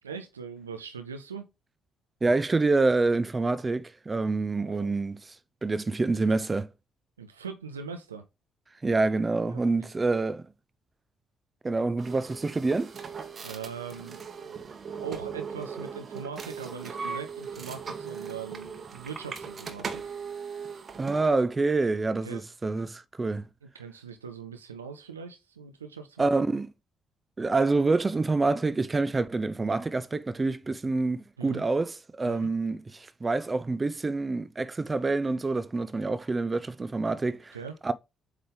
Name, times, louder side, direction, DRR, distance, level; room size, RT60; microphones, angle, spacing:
voice 1, 0.0-1.5 4.6-5.0 7.2-8.2 9.5-9.6 13.4-14.6 14.9-20.1 22.2-22.4 23.6-26.2 31.4-31.6 32.3-32.5 37.5-37.8, right 6 dB, 85° right, 0.5 m, -41 dB
voice 2, 2.2-5.2 5.6-6.7 8.8-10.5 11.6-12.9 21.0-23.5 26.2-26.7 27.4-37.6 37.8-37.9, right 3 dB, 25° right, 0.7 m, -27 dB
sound 1, 12.0-21.4, right 6 dB, 45° right, 1.2 m, -39 dB
7.8 x 3.4 x 3.8 m
figure-of-eight pair, 45°, 0 cm